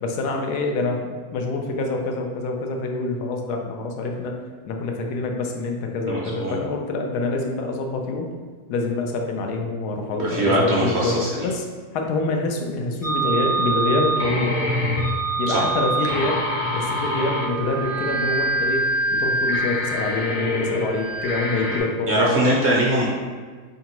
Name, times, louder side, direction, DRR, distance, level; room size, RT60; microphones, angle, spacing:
voice 1, 0.0-4.3 4.6-8.3 8.7-11.6 11.9-14.5 15.4-16.4 16.7-18.8 19.1-22.4, left 3 dB, 85° left, 2 dB, 1.2 m, -26 dB
voice 2, 6.1-6.5 10.1-11.5 15.5-15.7 22.1-23.1, right 1 dB, 60° right, -4 dB, 0.7 m, -21 dB
sound 1, 13.0-21.8, right 1 dB, 45° left, 0.4 m, -24 dB
3.7 x 3.4 x 2.9 m, 1.5 s
omnidirectional pair, 1.7 m